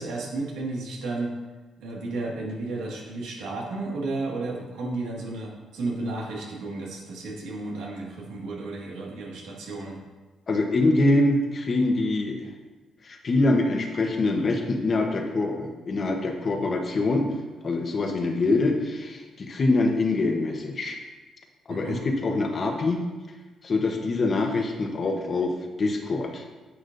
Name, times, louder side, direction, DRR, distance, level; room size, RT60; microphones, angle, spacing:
voice 1, 0.0-1.3 1.8-10.0 21.7-22.0, right 2 dB, 90° right, -3 dB, 2.0 m, -33 dB
voice 2, 10.5-12.5 13.0-17.3 17.6-21.0 21.7-23.0 23.6-26.4, left 2 dB, 45° left, 3 dB, 1.1 m, -24 dB
9.8 x 6.2 x 2.7 m, 1.3 s
cardioid pair, 90°, 0 cm